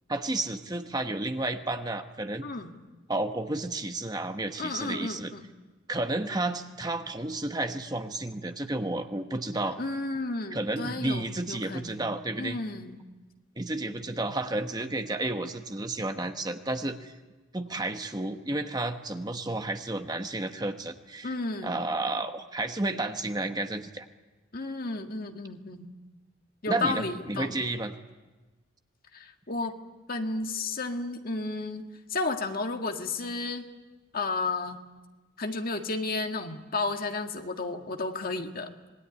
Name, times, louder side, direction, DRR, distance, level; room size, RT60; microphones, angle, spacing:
voice 1, 0.1-2.4 3.1-5.3 5.9-9.8 10.5-12.6 13.6-17.1 17.5-21.3 21.6-24.1 26.7-28.0, right 2 dB, 20° right, 6 dB, 1.2 m, -31 dB
voice 2, 2.4-2.8 4.6-5.4 9.8-13.0 21.2-21.9 24.5-25.9 26.6-27.6 29.1-29.7 30.1-33.7 34.1-34.8 35.4-38.7, left 3 dB, 45° left, 4 dB, 1.8 m, -33 dB
26.0 x 20.0 x 9.9 m, 1.2 s
head